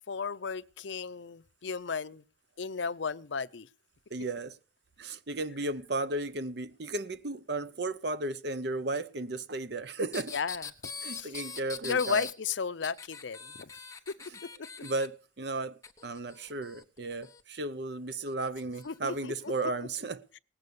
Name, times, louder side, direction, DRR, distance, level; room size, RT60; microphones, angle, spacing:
voice 1, 0.1-2.2 2.6-3.7 10.3-10.7 11.1-11.3 11.8-13.7 14.1-14.2 14.4-14.7 18.8-19.5, left 5 dB, 70° left, 0.6 m, -34 dB
voice 2, 4.1-4.6 5.0-10.3 11.0-12.3 14.8-20.2, right 2 dB, 55° right, 0.8 m, -34 dB
sound 1, 10.1-12.3 12.8-15.1 15.8-17.4 18.3-18.9 19.7-19.8, left 5 dB, 15° left, 0.9 m, -42 dB
18.5 x 8.0 x 6.9 m
head